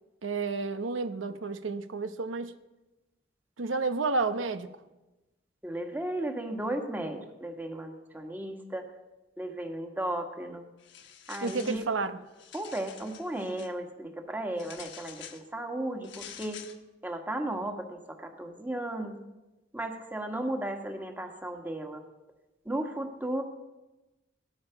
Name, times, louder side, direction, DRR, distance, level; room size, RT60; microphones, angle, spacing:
voice 1, 0.2-2.5 3.6-4.7 11.4-12.2, right 3 dB, 90° right, 10 dB, 0.9 m, -31 dB
voice 2, 5.6-8.8 9.4-10.6 11.3-11.8 12.5-16.6 17.0-19.2 19.7-22.0 22.6-23.4, right 1 dB, 10° right, 4 dB, 1.7 m, -35 dB
sound 1, 10.8-11.9 12.3-13.7 14.6-15.4 16.0-16.8, left 9 dB, 65° left, 1.4 m, -47 dB
18.0 x 13.0 x 5.8 m, 1.0 s
head